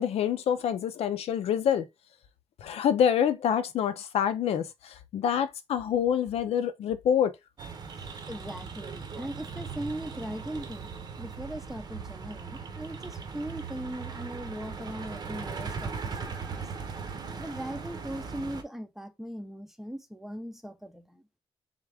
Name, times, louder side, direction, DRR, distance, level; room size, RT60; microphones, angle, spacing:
voice 1, 0.0-1.9 2.6-7.3, left 8 dB, 80° left, 0.6 m, -26 dB
sound 1, 7.6-18.6, right 5 dB, 45° right, 0.8 m, -39 dB
voice 2, 8.3-10.9 11.2-16.7 17.4-21.2, right 1 dB, 5° right, 0.6 m, -39 dB
3.7 x 3.5 x 3.4 m
wide cardioid pair, 155°, 10 cm